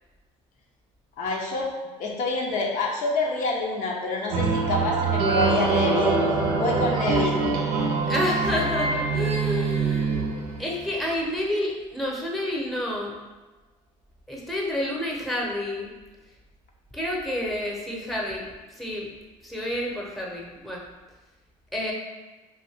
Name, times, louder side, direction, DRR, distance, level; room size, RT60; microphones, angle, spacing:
voice 1, 1.2-6.1 6.5-7.5, left 3 dB, 65° left, -1 dB, 0.6 m, -27 dB
sound 1, 4.3-10.9, right 4 dB, 80° right, 0.6 m, -25 dB
sound 2, 5.2-10.1, right 3 dB, 40° right, 0.6 m, -31 dB
voice 2, 8.1-10.1 10.6-13.1 14.3-15.9 16.9-19.1 19.4-20.8 21.7-21.9, left 1 dB, ahead, -3 dB, 0.8 m, -29 dB
2.7 x 2.5 x 3.5 m, 1.2 s
supercardioid pair, 85°, 15 cm